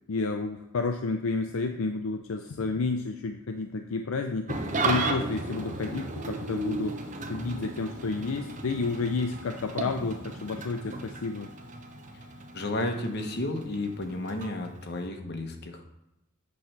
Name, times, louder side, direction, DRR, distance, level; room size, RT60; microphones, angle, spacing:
voice 1, 0.1-7.0 7.3-11.5, left 3 dB, 70° left, 5 dB, 0.5 m, -31 dB
Engine starting / Idling, 4.5-15.1, right 2 dB, 35° right, 0.7 m, -35 dB
voice 2, 12.5-15.8, left 2 dB, 50° left, 4 dB, 1.0 m, -32 dB
8.2 x 3.2 x 5.8 m, 0.90 s
head